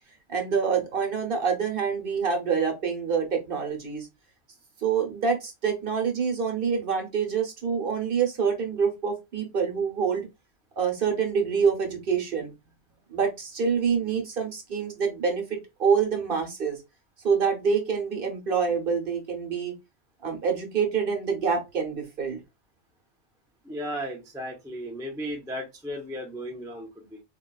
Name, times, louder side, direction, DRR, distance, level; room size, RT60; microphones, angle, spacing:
voice 1, 0.3-4.1 4.8-10.3 10.8-12.5 13.1-16.8 17.2-19.7 20.2-22.4, right 6 dB, 50° right, 1.0 m, -26 dB
voice 2, 23.6-27.2, equal, 5° right, 0.3 m, -35 dB
3.8 x 2.3 x 2.2 m
omnidirectional pair, 1.3 m